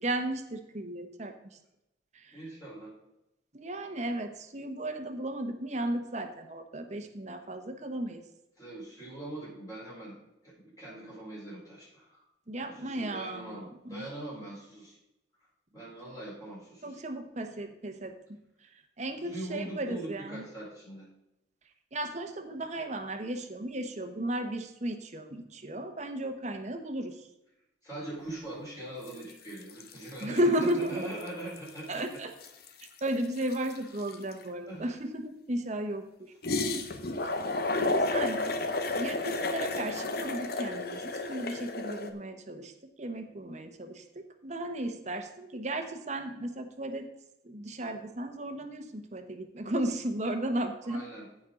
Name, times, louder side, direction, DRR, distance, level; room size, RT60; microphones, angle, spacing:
voice 1, 0.0-1.3 2.2-2.4 3.5-8.2 12.5-14.1 16.8-18.1 19.0-20.4 21.9-27.2 30.2-31.1 31.9-32.3 33.0-36.7 37.8-38.4 39.0-42.7 43.0-47.1 47.4-51.0, right 1 dB, 40° right, 6 dB, 1.0 m, -34 dB
voice 2, 2.3-2.9 8.6-10.2 10.4-12.2 12.6-15.0 15.7-17.0 19.2-21.1 27.8-32.2 34.7-34.9 50.8-51.3, right 1 dB, 20° left, -8 dB, 4.2 m, -42 dB
sound 1, 29.1-29.3 29.6-30.8 31.2-31.3 31.6-34.4 36.4-42.1, left 2 dB, 60° left, 1.0 m, -32 dB
15.0 x 5.4 x 3.8 m, 0.90 s
head